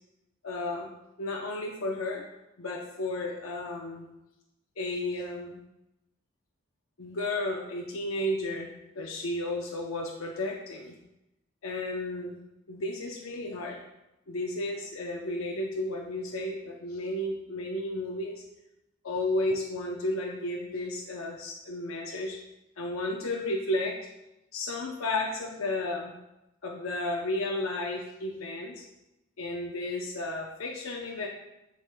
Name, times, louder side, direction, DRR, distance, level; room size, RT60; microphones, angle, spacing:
voice 1, 0.4-0.9 1.2-2.2 2.6-4.1 4.8-5.6 7.0-8.7 8.9-11.0 11.6-12.3 12.7-13.8 14.3-18.4 19.0-22.4 22.8-24.0 24.5-26.1 26.6-28.9 29.4-31.3, left 2 dB, 85° left, 0 dB, 0.7 m, -33 dB
11.5 x 4.8 x 2.2 m, 0.92 s
head